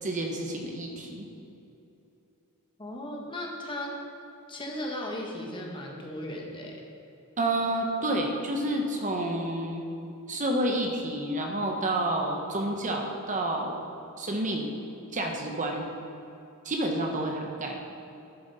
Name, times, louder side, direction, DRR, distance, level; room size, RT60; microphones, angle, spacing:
voice 1, 0.0-1.3 7.4-9.8 10.3-13.8 14.2-14.7 15.1-15.9 16.6-17.8, right 1 dB, 35° right, 2 dB, 0.9 m, -29 dB
voice 2, 2.8-4.0 4.5-6.8, left 1 dB, 20° left, -1 dB, 1.2 m, -36 dB
11.0 x 7.2 x 4.1 m, 2.8 s
head